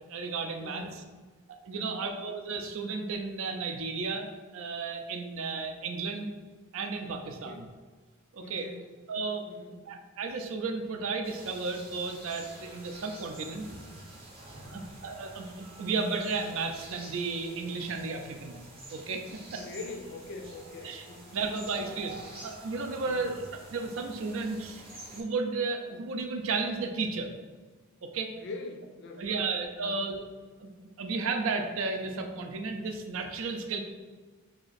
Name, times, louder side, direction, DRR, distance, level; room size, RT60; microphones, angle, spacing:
voice 1, 0.1-0.8 1.6-6.3 6.7-7.7 8.3-8.7 9.1-9.4 9.9-13.6 14.6-18.6 18.9-19.2 19.5-19.6 20.8-21.0 21.3-22.1 22.4-23.4 23.7-24.8 25.1-27.3 28.0-28.3 29.2-30.2 30.6-30.7 31.0-33.8, right 4 dB, 65° right, 5 dB, 0.4 m, -33 dB
voice 2, 0.6-1.1 1.7-2.1 7.2-7.6 8.4-8.9 9.5-9.9 14.6-15.0 19.6-21.9 23.0-23.4 28.4-29.5 29.7-30.1, left 3 dB, 55° left, 4 dB, 0.4 m, -44 dB
sound 1, 11.2-25.2, right 2 dB, 25° right, 0.7 m, -48 dB
2.9 x 2.5 x 4.0 m, 1.4 s
head